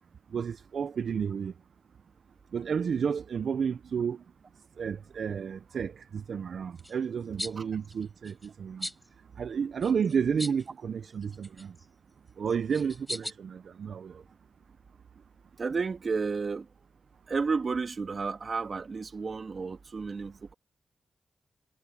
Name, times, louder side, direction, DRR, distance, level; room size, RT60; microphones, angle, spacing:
voice 1, 0.3-1.5 2.5-4.2 4.8-8.9 9.4-11.7 12.4-14.2, right 6 dB, 75° right, 0.5 m, -31 dB
sound 1, 6.8-7.0 7.4-7.6 7.8-8.5 8.8-9.1 9.8-10.7 11.0-11.9 12.5-13.3, equal, 5° left, 4.2 m, -39 dB
voice 2, 15.6-16.7 17.3-20.5, right 4 dB, 55° right, 2.3 m, -32 dB
cardioid pair, 70°, 0 cm